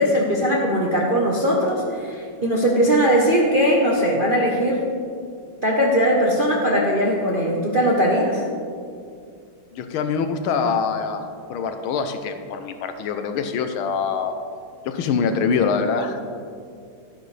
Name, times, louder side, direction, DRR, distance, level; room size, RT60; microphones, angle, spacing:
voice 1, 0.0-4.8 5.6-8.4, equal, 45° right, -3 dB, 0.7 m, -20 dB
voice 2, 9.7-14.4 14.8-16.2, left 5 dB, 80° left, 7 dB, 1.5 m, -24 dB
12.0 x 10.0 x 3.3 m, 2.3 s
omnidirectional pair, 2.3 m